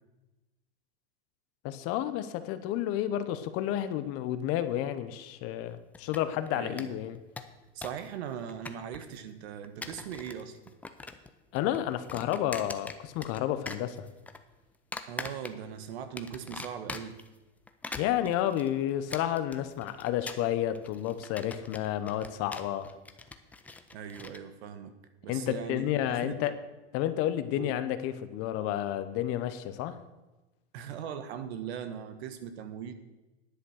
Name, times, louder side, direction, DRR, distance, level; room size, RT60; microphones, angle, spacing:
voice 1, 1.6-7.2 11.5-14.0 18.0-22.9 25.3-26.5 26.9-30.0, left 12 dB, 40° left, 12 dB, 0.9 m, -31 dB
sound 1, 5.9-6.5 6.8-6.9 7.2-8.1 8.3-9.2 9.6-10.4 10.7-11.3 11.6-13.4 13.7-14.4 14.9-15.8 16.2-17.3 17.7-24.4, left 3 dB, 5° left, 0.4 m, -42 dB
voice 2, 6.5-7.0 7.7-10.6 15.1-17.2 23.9-24.9 25.2-26.5 27.6-27.8 30.7-32.9, right 8 dB, 65° right, 10 dB, 1.4 m, -40 dB
10.5 x 8.1 x 6.4 m, 1.1 s
hypercardioid pair, 125°, 35 cm